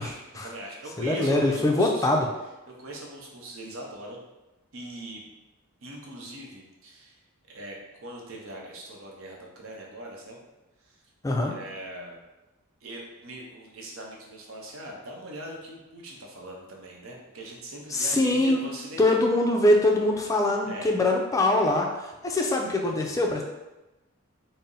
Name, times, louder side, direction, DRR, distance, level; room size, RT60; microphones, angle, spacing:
voice 1, 0.0-2.1 2.7-4.2 4.7-5.2 5.8-7.2 7.5-10.4 10.8-11.0 11.5-12.2 12.8-19.2 20.6-20.9, right 1 dB, 75° right, -1 dB, 0.8 m, -41 dB
voice 2, 1.0-2.3 11.2-11.5 17.9-18.6 19.0-23.4, left 1 dB, 15° left, 1 dB, 0.4 m, -23 dB
4.1 x 2.0 x 3.8 m, 1.0 s
head